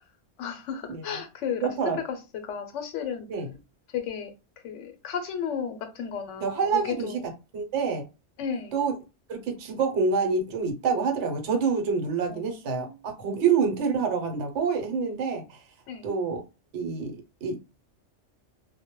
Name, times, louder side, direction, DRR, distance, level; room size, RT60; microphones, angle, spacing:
voice 1, 0.4-2.2 2.4-3.3 3.9-4.3 4.6-7.2 8.4-8.8 12.3-13.0 15.9-16.1, left 7 dB, 80° left, 0.9 m, -34 dB
voice 2, 1.6-2.0 3.3-3.5 6.4-7.2 7.5-8.0 8.7-8.9 9.3-15.6 16.0-16.4 16.7-17.6, right 5 dB, 70° right, 1.0 m, -27 dB
2.1 x 2.1 x 2.9 m
omnidirectional pair, 1.3 m